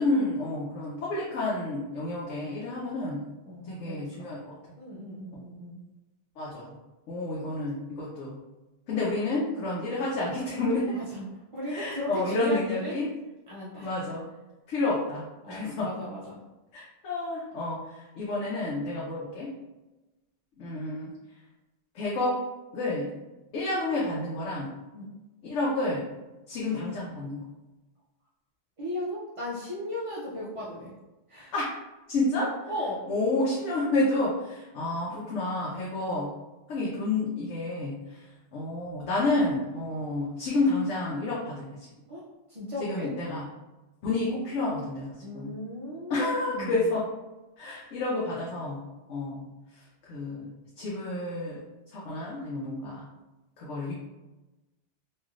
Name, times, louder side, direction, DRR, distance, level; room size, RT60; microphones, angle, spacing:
voice 1, 0.0-3.2 3.7-4.5 6.4-6.7 7.1-8.4 8.9-10.9 11.7-13.1 13.8-14.2 14.7-15.9 16.7-19.5 20.6-21.1 21.9-22.4 22.7-23.1 23.5-24.7 25.4-26.0 26.5-27.4 31.5-31.7 32.1-32.6 33.1-36.3 36.7-38.2 38.5-41.8 42.8-43.5 44.0-45.5 46.1-47.1 47.6-48.8 49.1-49.5 50.0-50.5 50.8-51.6 51.9-53.0 53.6-53.9, left 2 dB, 85° left, -5 dB, 1.0 m, -30 dB
voice 2, 3.5-4.0 4.8-5.8 10.9-13.0 13.5-13.9 15.4-16.4 24.9-25.1 28.8-30.9 31.3-31.5 32.7-33.0 42.1-42.2 42.5-43.1 45.2-46.8, left 1 dB, 40° right, -8 dB, 0.4 m, -36 dB
3.1 x 2.6 x 2.4 m, 1.1 s
omnidirectional pair, 1.2 m